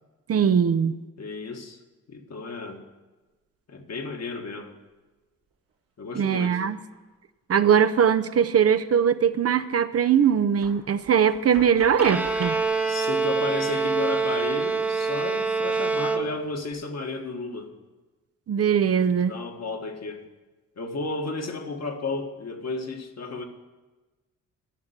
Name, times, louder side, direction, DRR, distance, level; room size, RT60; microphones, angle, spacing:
voice 1, 0.3-0.9 6.2-6.8 7.5-12.6 18.5-19.4, right 8 dB, 45° right, 10 dB, 0.6 m, -21 dB
voice 2, 1.2-1.8 2.1-2.8 3.7-4.7 6.0-6.6 12.8-17.7 19.3-20.2 20.8-23.4, left 3 dB, 55° left, 4 dB, 1.5 m, -33 dB
sound 1, 6.9-7.0 8.7-8.8 9.0-9.3 9.9-10.0 10.6-12.6, right 4 dB, 85° right, 2.9 m, -41 dB
Bowed string instrument, 12.0-16.7, right 4 dB, 5° right, 1.0 m, -26 dB
11.0 x 6.6 x 9.3 m, 1.2 s
cardioid pair, 85°, 32 cm